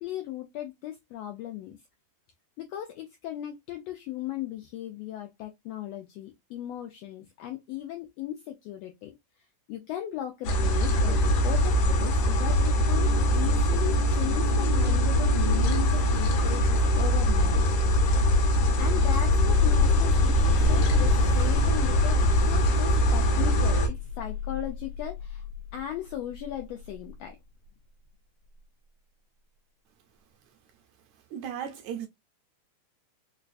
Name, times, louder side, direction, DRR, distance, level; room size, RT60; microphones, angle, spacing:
voice 1, 0.0-1.8 2.6-9.1 9.7-17.6 18.8-25.4 25.7-27.4, left 12 dB, 90° left, 1.5 m, -37 dB
sound 1, 10.4-23.9, equal, 70° left, 2.1 m, -23 dB
sound 2, 18.5-27.1, left 7 dB, 55° left, 1.4 m, -30 dB
voice 2, 31.3-32.1, right 9 dB, 80° right, 1.8 m, -35 dB
4.9 x 2.3 x 2.4 m
omnidirectional pair, 3.5 m